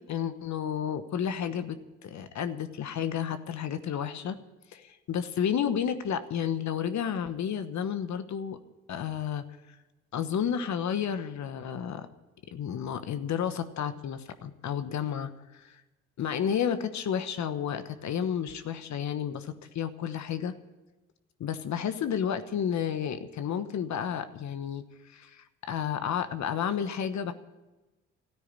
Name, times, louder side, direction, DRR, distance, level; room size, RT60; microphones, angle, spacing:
voice 1, 0.1-4.4 4.7-8.6 8.9-9.4 10.1-12.1 12.5-15.3 15.6-15.8 16.2-20.5 21.4-27.3, left 8 dB, 65° left, 10 dB, 1.1 m, -31 dB
13.0 x 9.5 x 9.7 m, 1.1 s
supercardioid pair, 60°, 31 cm